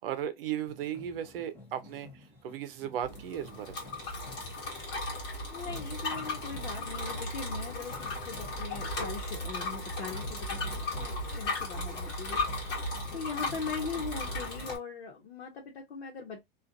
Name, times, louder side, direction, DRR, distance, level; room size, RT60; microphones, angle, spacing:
voice 1, 0.0-3.9, right 10 dB, 65° right, 0.7 m, -36 dB
sound 1, 0.7-14.7, left 1 dB, 5° left, 0.9 m, -53 dB
Bicycle, 3.0-14.8, left 2 dB, 35° left, 1.4 m, -36 dB
voice 2, 5.5-12.4 13.1-16.4, left 5 dB, 80° left, 1.0 m, -40 dB
2.5 x 2.4 x 2.5 m
supercardioid pair, 175°, 31 cm